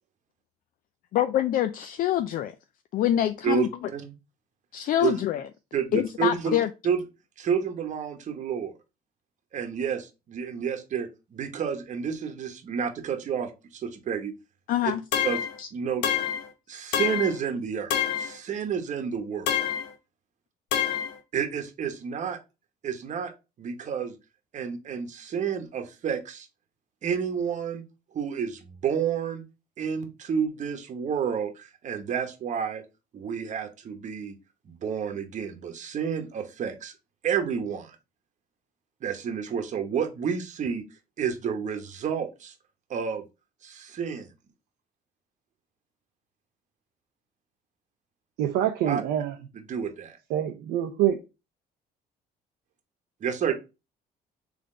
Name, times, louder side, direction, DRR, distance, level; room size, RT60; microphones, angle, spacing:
voice 1, 1.1-2.5 2.9-3.7 4.7-5.4 5.9-6.7 14.7-15.0 15.6-15.7, left 12 dB, 55° left, 0.4 m, -25 dB
voice 2, 3.4-4.2 5.0-5.2 5.7-6.6 6.8-7.0 7.4-8.7 9.5-14.3 14.8-14.9 15.2-15.4 15.7-16.0 16.7-17.9 18.2-19.6 21.3-22.4 22.8-23.3 23.6-24.1 24.5-26.5 27.0-27.8 28.1-29.4 29.8-32.8 33.1-34.3 34.6-36.9 37.2-38.0 39.0-40.8 41.2-42.5 42.9-43.2 43.6-44.3 48.9-49.0 49.5-50.2 53.2-53.5, right 7 dB, 45° right, 1.0 m, -30 dB
sound 1, 15.1-15.6 16.0-16.5 16.9-17.4 17.9-18.3 19.5-19.9 20.7-21.1, left 9 dB, 85° left, 0.7 m, -27 dB
voice 3, 48.4-49.4 50.3-51.2, right 11 dB, 90° right, 0.6 m, -25 dB
3.7 x 3.5 x 3.7 m
cardioid pair, 110°, 17 cm